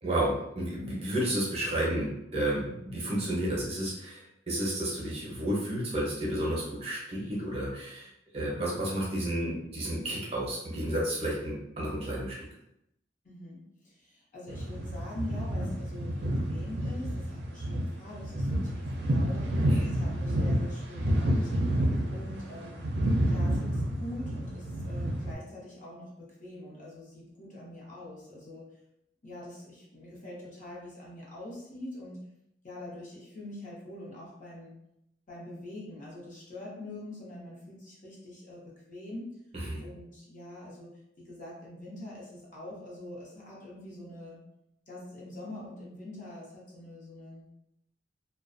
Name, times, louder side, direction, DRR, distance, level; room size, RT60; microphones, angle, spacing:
voice 1, 0.0-8.1 8.3-12.5 19.7-19.9 39.5-39.8, right 1 dB, 35° right, -5 dB, 0.7 m, -31 dB
voice 2, 13.2-21.8 22.1-22.9 23.2-28.6 29.2-32.2 32.6-34.7 35.3-39.4 39.8-40.9 41.2-44.4 44.9-47.5, left 1 dB, 45° left, -6 dB, 0.9 m, -44 dB
sound 1, 14.5-25.3, equal, 65° right, 0.5 m, -29 dB
2.4 x 2.2 x 2.5 m, 0.81 s
head